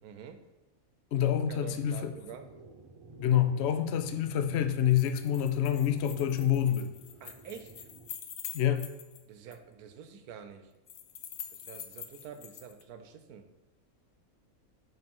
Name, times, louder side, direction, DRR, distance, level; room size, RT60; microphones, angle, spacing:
voice 1, 0.0-0.4 1.2-2.5 7.2-7.9 9.3-10.7 11.5-13.5, right 7 dB, 90° right, 8 dB, 1.2 m, -47 dB
voice 2, 1.1-2.1 3.2-6.9 8.5-8.8, left 10 dB, 60° left, 8 dB, 0.7 m, -27 dB
sound 1, 1.7-8.1, right 3 dB, 40° right, 0.4 m, -52 dB
sound 2, 4.7-9.2 9.5-9.6 10.9-12.8, left 9 dB, 85° left, 1.2 m, -45 dB
5.7 x 5.5 x 5.3 m, 1.1 s
omnidirectional pair, 1.5 m